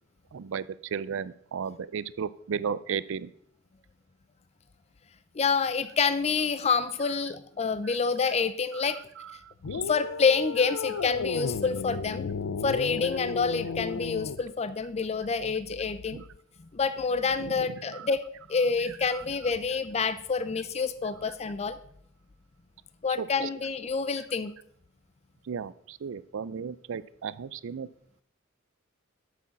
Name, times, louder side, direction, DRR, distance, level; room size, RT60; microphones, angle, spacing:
voice 1, 0.3-3.3 8.7-9.9 16.1-16.2 17.6-18.1 19.1-19.2 23.2-23.5 25.5-27.9, right 6 dB, 65° right, 18 dB, 0.4 m, -35 dB
voice 2, 5.3-9.0 9.7-12.3 12.6-16.2 16.7-18.2 18.5-21.8 23.0-24.5, left 5 dB, 30° left, 13 dB, 0.5 m, -27 dB
sound 1, 9.6-14.4, left 5 dB, 85° left, 0.5 m, -34 dB
8.4 x 6.3 x 6.9 m, 0.66 s
head